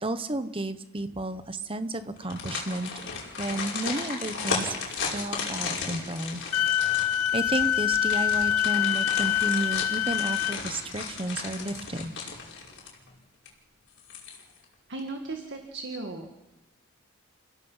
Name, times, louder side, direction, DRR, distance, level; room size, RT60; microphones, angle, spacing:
voice 1, 0.0-2.9 3.4-4.8 5.1-6.4 7.3-12.1, right 2 dB, 25° right, 11 dB, 1.1 m, -32 dB
sound 1, 2.2-13.1 13.5-13.6 14.0-14.6 15.0-15.1, left 5 dB, 50° left, 5.1 m, -35 dB
Wind instrument woodwind instrument, 6.5-10.6, left 11 dB, 85° left, 0.6 m, -25 dB
voice 2, 14.9-16.3, right 3 dB, 50° right, 4 dB, 1.9 m, -36 dB
30.0 x 16.5 x 5.7 m, 1.1 s
head